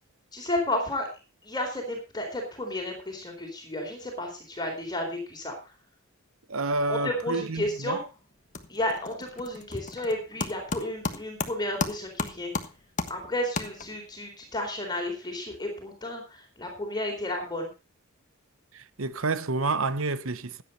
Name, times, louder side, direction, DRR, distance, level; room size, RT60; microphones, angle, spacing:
voice 1, 0.3-1.1 1.4-5.7 6.9-8.0 8.7-12.5 13.1-17.7, left 1 dB, 20° left, 4.1 m, -32 dB
voice 2, 6.5-8.0 18.7-20.6, right 3 dB, 70° right, 1.0 m, -29 dB
sound 1, 7.7-8.0 8.3-14.2, left 3 dB, 35° left, 1.3 m, -35 dB
16.0 x 9.9 x 4.2 m
head